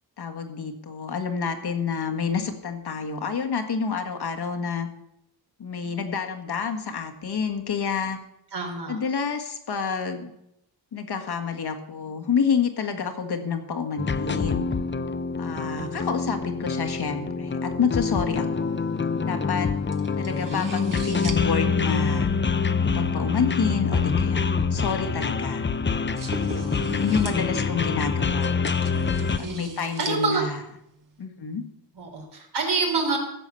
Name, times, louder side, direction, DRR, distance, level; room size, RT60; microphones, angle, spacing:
voice 1, 0.2-4.9 5.6-8.2 8.9-10.3 10.9-14.7 15.4-18.8 19.2-19.7 20.2-22.3 22.9-25.6 26.4-28.5 29.4-30.6 31.2-31.6, left 6 dB, 65° left, 5 dB, 1.8 m, -28 dB
voice 2, 8.5-9.0 15.5-16.0 26.7-28.0 29.4-30.4 31.9-33.2, right 4 dB, 70° right, 1 dB, 4.0 m, -29 dB
sound 1, 14.0-29.4, left 5 dB, 25° left, 0.7 m, -26 dB
sound 2, 18.4-31.2, right 4 dB, 50° right, 1.8 m, -44 dB
15.0 x 7.1 x 7.0 m, 0.80 s
wide cardioid pair, 115°, 41 cm